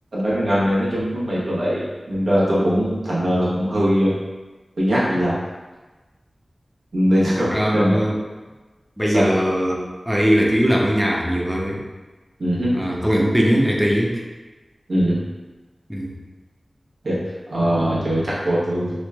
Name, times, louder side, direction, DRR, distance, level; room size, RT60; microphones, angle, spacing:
voice 1, 0.1-4.1 4.8-5.4 6.9-8.0 9.1-9.2 12.4-12.7 14.9-15.2 17.0-17.2 17.5-19.0, equal, 80° right, -8 dB, 0.9 m, -20 dB
voice 2, 7.5-8.2 9.0-9.8 10.1-11.8 12.7-14.1 15.9-16.1, equal, 5° right, -2 dB, 0.5 m, -20 dB
3.0 x 2.1 x 2.3 m, 1.2 s
cardioid pair, 40°, 0 cm